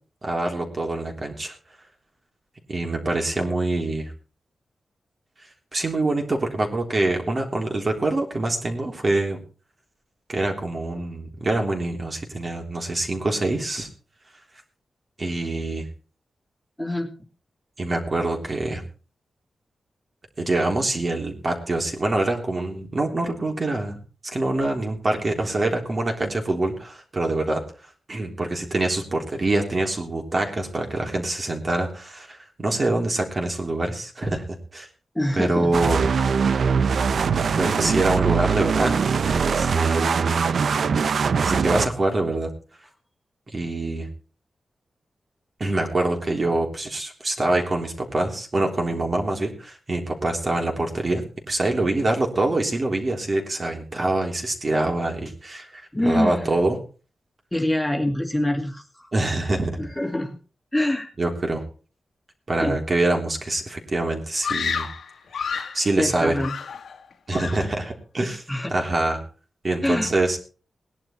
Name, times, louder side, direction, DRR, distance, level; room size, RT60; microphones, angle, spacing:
voice 1, 0.2-1.6 2.7-4.1 5.7-9.4 10.3-13.9 15.2-15.9 17.8-18.8 20.4-24.0 24.3-27.6 28.1-34.4 34.7-34.9 35.4-36.0 37.5-39.0 39.3-40.1 41.4-42.5 43.5-44.1 45.6-56.8 59.1-59.8 61.2-61.6 62.5-64.9 65.7-66.4 67.3-68.4 68.7-69.2 69.6-70.4, right 2 dB, 35° right, 2 dB, 3.4 m, -25 dB
voice 2, 16.8-17.1 35.1-35.7 36.7-36.8 55.9-56.5 57.5-59.1 59.8-60.4 60.7-61.1 62.6-62.8 66.0-66.6 68.5-68.7 69.8-70.1, left 1 dB, 5° left, 1 dB, 2.4 m, -25 dB
sound 1, 35.7-41.9, right 6 dB, 65° right, 0.7 m, -22 dB
Screaming, 64.4-65.9 66.4-67.0 67.3-67.7, left 6 dB, 80° left, 1.9 m, -30 dB
18.5 x 11.0 x 4.5 m, 0.38 s
wide cardioid pair, 115°, 0 cm